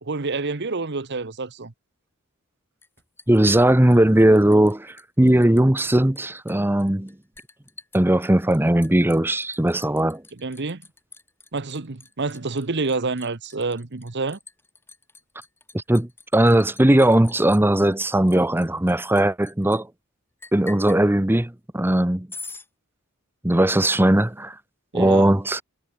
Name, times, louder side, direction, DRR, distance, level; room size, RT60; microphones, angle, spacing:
voice 1, 0.0-1.7 10.4-10.8 11.5-14.4 24.9-25.3, right 3 dB, 50° right, 1.1 m, -28 dB
Liquid, 2.8-4.7 5.0-5.6 5.9-19.8 20.4-21.0 22.3-22.7, left 3 dB, 10° left, 4.5 m, -45 dB
voice 2, 3.3-7.1 7.9-10.2 15.7-19.9 20.5-22.3 23.4-24.6 24.9-25.6, right 1 dB, 10° right, 0.8 m, -18 dB
head